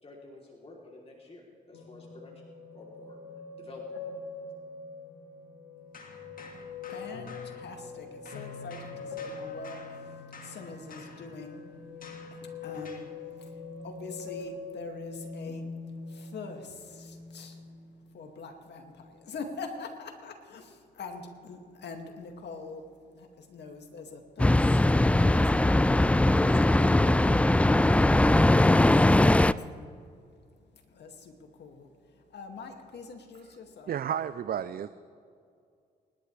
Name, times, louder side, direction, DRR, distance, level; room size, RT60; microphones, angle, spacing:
voice 1, 0.0-2.5 2.7-3.2 3.6-3.8, left 2 dB, 30° left, -3 dB, 3.3 m, -50 dB
sound 1, 1.7-18.0 18.4-19.1, left 4 dB, 85° left, 1.6 m, -43 dB
sound 2, 5.9-8.0 8.2-13.2, left 4 dB, 50° left, 2.1 m, -50 dB
voice 2, 6.9-11.6 12.3-13.1 13.4-13.6 13.8-15.7 16.0-17.6 18.1-24.9 25.1-29.9 30.7-33.9, left 4 dB, 65° left, 3 dB, 2.3 m, -44 dB
sound 3, 24.4-29.5, left 1 dB, 5° left, 0.3 m, -21 dB
voice 3, 33.9-34.9, right 9 dB, 55° right, 13 dB, 0.5 m, -31 dB
26.5 x 11.5 x 3.3 m, 2.3 s
supercardioid pair, 55°, 19 cm